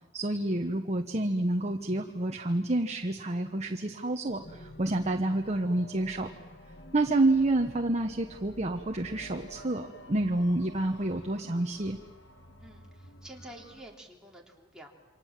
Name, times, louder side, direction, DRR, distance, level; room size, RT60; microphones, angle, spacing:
voice 1, 0.1-6.3 6.9-12.0, right 2 dB, 35° right, 4 dB, 1.2 m, -28 dB
sound 1, 4.3-13.8, left 1 dB, 65° left, 1.9 m, -51 dB
voice 2, 12.6-14.9, right 1 dB, 5° right, -2 dB, 3.5 m, -49 dB
28.5 x 25.0 x 7.5 m, 1.2 s
head